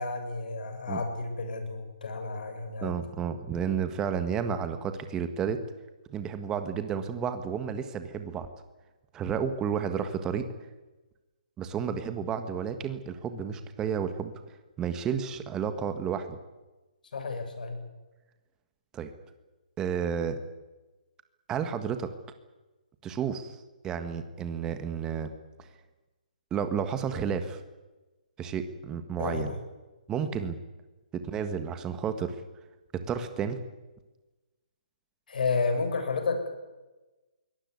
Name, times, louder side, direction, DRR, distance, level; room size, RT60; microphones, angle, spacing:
voice 1, 0.0-2.9 17.1-17.8 29.2-29.6 35.3-36.5, left 4 dB, 70° left, 6 dB, 7.2 m, -31 dB
voice 2, 2.8-5.6 6.1-8.5 9.1-10.5 11.6-14.3 14.8-16.4 18.9-19.1 19.8-20.4 21.5-22.1 23.0-23.6 23.8-25.3 26.5-27.6 28.4-29.5 30.1-30.6 31.1-32.4 32.9-33.6, right 7 dB, 15° right, 9 dB, 1.6 m, -31 dB
23.5 x 18.0 x 9.8 m, 1.1 s
hypercardioid pair, 160°, 5 cm